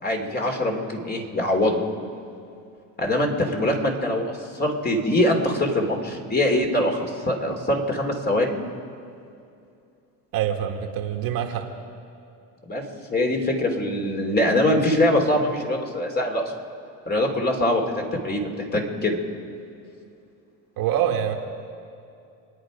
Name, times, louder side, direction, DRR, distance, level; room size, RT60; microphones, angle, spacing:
voice 1, 0.0-1.8 3.0-4.2 4.5-8.5 12.7-12.8 13.1-16.4 17.1-19.2, left 1 dB, 25° left, 1 dB, 2.9 m, -23 dB
voice 2, 10.3-11.7 20.8-21.4, right 10 dB, 60° right, 3 dB, 1.9 m, -25 dB
28.0 x 9.6 x 5.1 m, 2.5 s
supercardioid pair, 90°, 39 cm